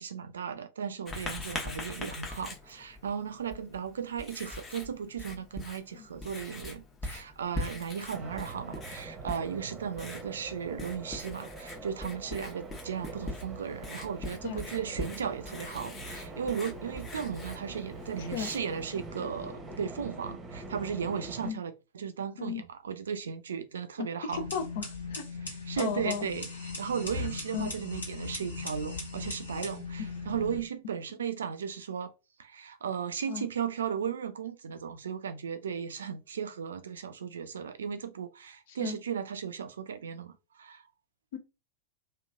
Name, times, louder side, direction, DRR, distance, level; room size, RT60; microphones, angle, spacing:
voice 1, 0.0-24.5 25.4-26.5 26.8-32.1 32.4-40.8, right 7 dB, 65° right, 0.4 m, -36 dB
Writing, 1.1-18.9, left 2 dB, 20° left, 0.9 m, -43 dB
sound 1, 8.1-21.5, right 3 dB, 25° right, 0.8 m, -44 dB
voice 2, 18.2-18.5 21.4-21.6 22.4-22.6 24.2-25.2 25.8-26.2 27.5-27.7 33.3-33.5 38.7-39.0 41.3-41.4, left 8 dB, 55° left, 0.7 m, -35 dB
sound 2, 24.3-30.6, left 4 dB, 75° left, 1.6 m, -38 dB
3.0 x 2.5 x 2.4 m
figure-of-eight pair, 90°, 0 cm